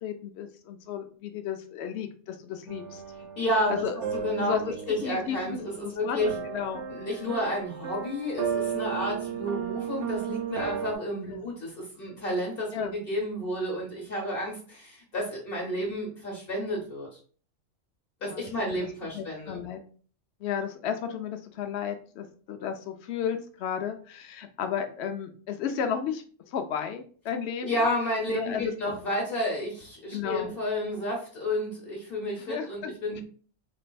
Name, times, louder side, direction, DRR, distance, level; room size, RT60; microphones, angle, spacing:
voice 1, 0.0-3.0 3.7-3.9 4.4-5.6 5.8-7.1 9.3-9.4 11.3-11.5 12.7-12.9 15.8-16.0 18.2-18.5 19.1-19.8 20.4-27.8 28.3-29.0 30.1-30.5 32.4-33.2, left 8 dB, 65° left, 7 dB, 0.8 m, -34 dB
sound 1, 2.7-11.0, right 7 dB, 70° right, 1.0 m, -35 dB
voice 2, 3.4-3.8 4.1-6.3 6.9-17.1 18.2-19.6 27.6-33.2, left 1 dB, 50° left, -2 dB, 1.1 m, -31 dB
4.2 x 3.3 x 2.2 m, 0.43 s
omnidirectional pair, 1.3 m